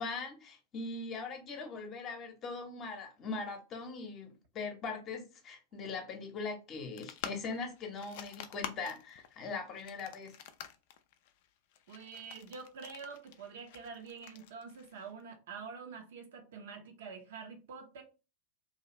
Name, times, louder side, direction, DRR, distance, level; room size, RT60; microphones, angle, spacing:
voice 1, 0.0-10.3, left 4 dB, 30° left, 0.8 m, -41 dB
sound 1, 7.0-15.2, left 9 dB, 50° left, 0.3 m, -48 dB
voice 2, 11.9-18.0, right 5 dB, 55° right, 0.6 m, -46 dB
2.7 x 2.3 x 2.9 m
figure-of-eight pair, 90°, 0 cm